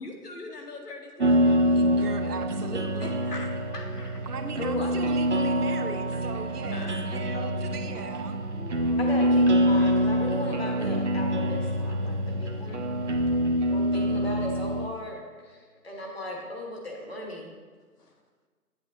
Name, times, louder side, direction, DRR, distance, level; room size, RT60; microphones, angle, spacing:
voice 1, 0.0-1.7 3.0-4.3 6.7-7.0 7.3-7.6 8.5-9.5 18.0-18.2, left 2 dB, 80° left, 2 dB, 1.6 m, -42 dB
sound 1, 1.2-14.9, equal, 50° right, 0.6 m, -25 dB
voice 2, 1.4-3.2 4.3-8.5, right 4 dB, 75° right, 6 dB, 0.9 m, -39 dB
voice 3, 4.6-5.0 9.0-12.8 13.7-17.5, left 1 dB, 40° left, -1 dB, 1.4 m, -36 dB
8.1 x 8.0 x 2.7 m, 1.5 s
hypercardioid pair, 180°, 46 cm